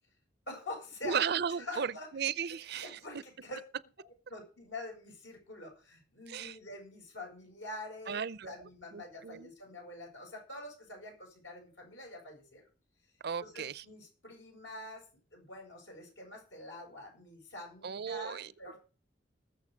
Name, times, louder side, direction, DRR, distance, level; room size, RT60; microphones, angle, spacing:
voice 1, 0.5-1.2 1.6-2.1 2.8-3.6 4.3-12.6 13.4-15.0 15.3-18.8, left 1 dB, 75° left, 7.7 m, -46 dB
voice 2, 1.0-3.0 6.3-6.6 8.1-9.5 13.2-13.8 17.8-18.5, right 7 dB, 60° right, 0.5 m, -35 dB
20.0 x 7.1 x 5.1 m
head